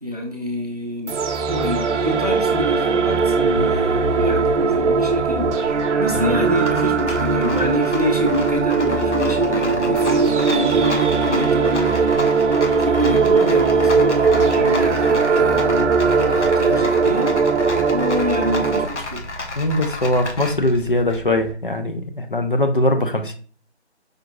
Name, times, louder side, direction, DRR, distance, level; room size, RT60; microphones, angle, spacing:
voice 1, 0.0-1.1 1.5-5.5 6.0-12.1 12.4-12.5 12.8-17.4 17.9-19.3, equal, 35° right, 0.6 m, -27 dB
sound 1, 1.1-18.8, right 4 dB, 85° right, 0.6 m, -19 dB
sound 2, 3.5-8.8, equal, 20° right, 0.9 m, -34 dB
Rattle, 4.6-21.5, left 2 dB, 80° left, 0.9 m, -32 dB
voice 2, 19.6-23.3, left 1 dB, 50° left, 0.6 m, -21 dB
5.0 x 2.4 x 2.9 m
figure-of-eight pair, 175°, 35 cm